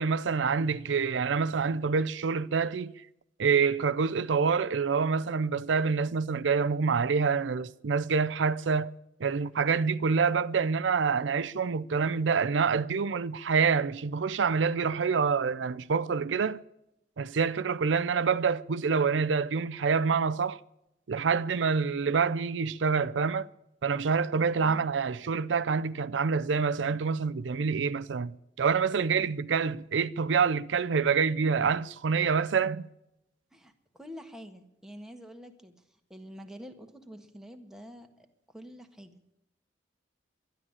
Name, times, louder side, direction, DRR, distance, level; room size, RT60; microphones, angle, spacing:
voice 1, 0.0-2.9 3.4-8.9 9.2-16.6 17.2-20.6 21.1-23.5 23.8-28.3 28.6-32.9, right 5 dB, 85° right, 0.5 m, -27 dB
voice 2, 33.5-39.3, equal, 5° right, 1.5 m, -47 dB
12.5 x 11.5 x 8.7 m
head